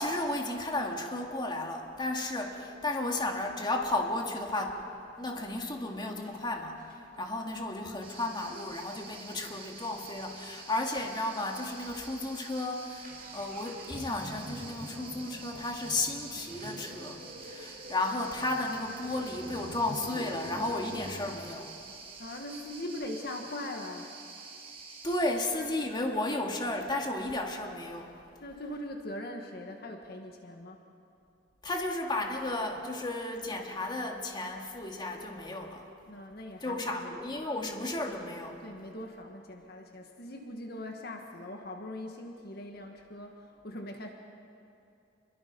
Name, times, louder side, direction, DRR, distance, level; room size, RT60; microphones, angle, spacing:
voice 1, 0.0-4.8 5.2-21.7 25.0-28.1 31.6-35.8 36.6-38.6, left 2 dB, 25° left, 1 dB, 2.2 m, -33 dB
sound 1, 2.0-2.1 2.5-5.2 5.8-5.9 6.2-6.4 6.8-10.4 10.7-10.8 11.0-11.1 11.7-11.9 12.2-21.3, right 1 dB, 50° right, 4.4 m, -47 dB
sound 2, 8.0-25.2, right 4 dB, 30° right, 4.3 m, -48 dB
voice 2, 22.2-24.1 28.4-30.8 36.1-37.2 38.6-44.1, left 1 dB, 60° left, 3 dB, 1.7 m, -41 dB
29.0 x 22.5 x 5.4 m, 2.7 s
head